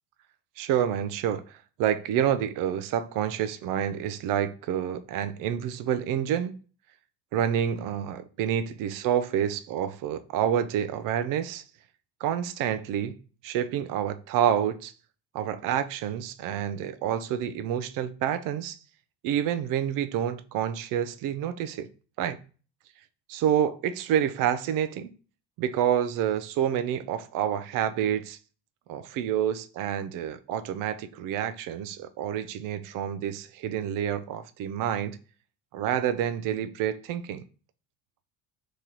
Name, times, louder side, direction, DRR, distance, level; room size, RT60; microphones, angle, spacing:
voice 1, 0.6-6.5 7.3-11.6 12.2-13.2 13.4-14.9 15.3-18.8 19.2-21.9 22.2-22.4 23.3-25.1 25.6-28.4 28.9-35.2 35.7-37.4, right 9 dB, 60° right, 0.5 m, -28 dB
2.9 x 2.9 x 3.8 m
cardioid pair, 125°, 37 cm